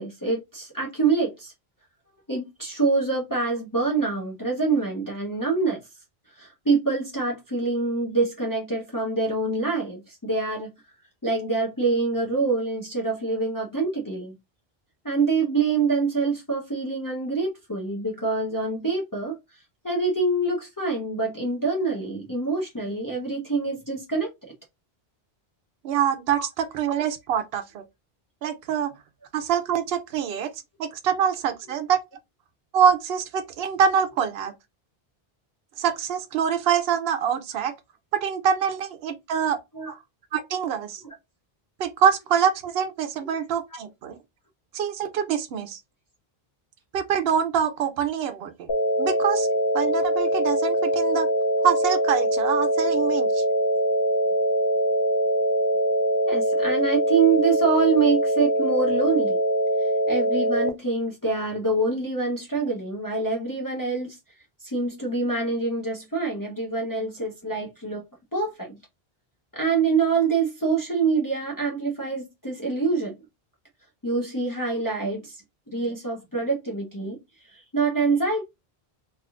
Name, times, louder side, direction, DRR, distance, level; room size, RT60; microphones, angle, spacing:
voice 1, 0.0-1.5 2.3-5.8 6.4-10.7 11.2-14.4 15.0-19.3 19.8-24.3 26.4-26.5 31.6-31.7 39.7-39.9 41.0-41.1 43.7-43.8 56.3-59.4 60.1-64.2 64.6-68.0 68.3-68.8 69.5-73.1 74.0-75.4 75.7-77.2 77.5-78.4, right 4 dB, 20° left, 0.8 m, -25 dB
voice 2, 25.8-27.8 28.4-28.9 29.3-30.5 30.8-32.0 32.7-34.5 35.8-37.7 38.1-39.6 39.9-40.0 40.3-41.0 41.8-44.2 44.7-45.8 46.9-48.7 49.0-49.5 49.7-51.3 51.6-53.4, right 8 dB, 70° right, 0.8 m, -25 dB
sound 1, 48.7-60.7, equal, 35° left, 0.4 m, -23 dB
3.4 x 2.6 x 2.4 m
omnidirectional pair, 1.0 m